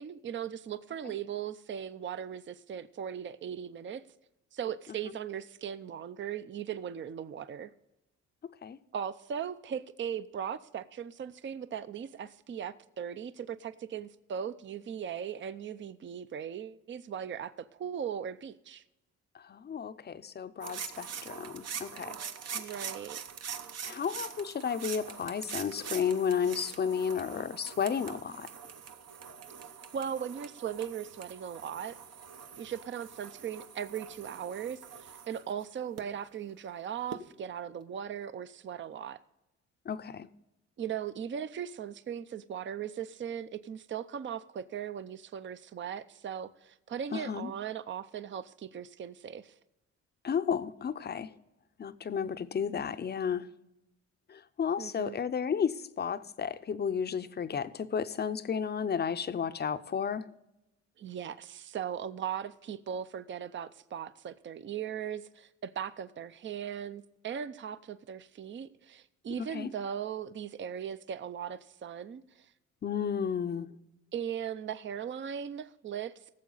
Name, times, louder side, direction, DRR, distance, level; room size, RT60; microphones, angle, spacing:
voice 1, 0.0-4.0 4.5-7.7 8.9-18.8 22.5-23.2 29.9-32.0 32.6-39.2 40.8-49.5 54.8-55.2 61.0-72.2 74.1-76.1, right 8 dB, 40° right, 0.6 m, -38 dB
voice 2, 19.3-22.2 23.8-28.5 39.9-40.3 47.1-47.5 50.2-51.3 51.8-53.5 54.3-60.3 69.4-69.7 72.8-73.7, left 7 dB, 35° left, 0.6 m, -32 dB
sound 1, 20.6-36.0 37.1-37.2, right 7 dB, 55° right, 0.9 m, -43 dB
17.0 x 7.4 x 4.0 m
cardioid pair, 90°, 30 cm